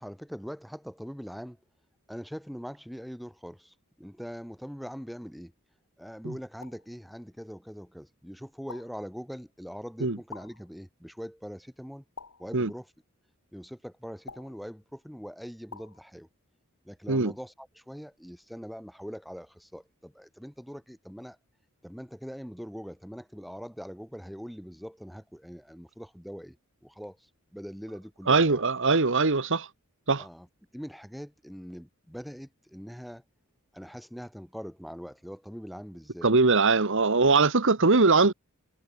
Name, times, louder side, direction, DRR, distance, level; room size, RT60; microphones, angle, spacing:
voice 1, 0.0-1.6 2.1-5.5 6.0-12.0 12.4-12.9 13.5-16.3 16.8-21.4 21.8-26.6 26.8-28.6 30.2-30.5 30.7-33.2 33.7-36.3, equal, ahead, 4.0 m, -42 dB
sound 1, 6.6-6.9 8.7-9.1 10.3-10.7 12.2-12.6 14.3-14.7 15.7-16.0, left 4 dB, 80° left, 7.1 m, -46 dB
voice 2, 28.3-29.7 30.1-30.2 36.2-38.3, right 3 dB, 60° right, 1.5 m, -21 dB
head